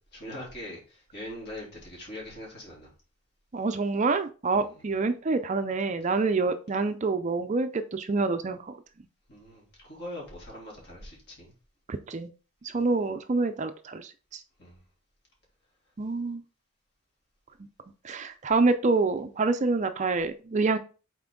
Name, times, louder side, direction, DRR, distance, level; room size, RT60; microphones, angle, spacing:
voice 1, 0.0-2.9 4.5-4.8 9.3-11.5 12.7-12.8 14.6-14.8, left 1 dB, 50° left, 3.1 m, -42 dB
voice 2, 3.5-8.8 11.9-12.3 12.6-14.4 16.0-16.4 18.0-20.8, right 3 dB, 35° right, 0.4 m, -27 dB
5.9 x 4.3 x 3.7 m
head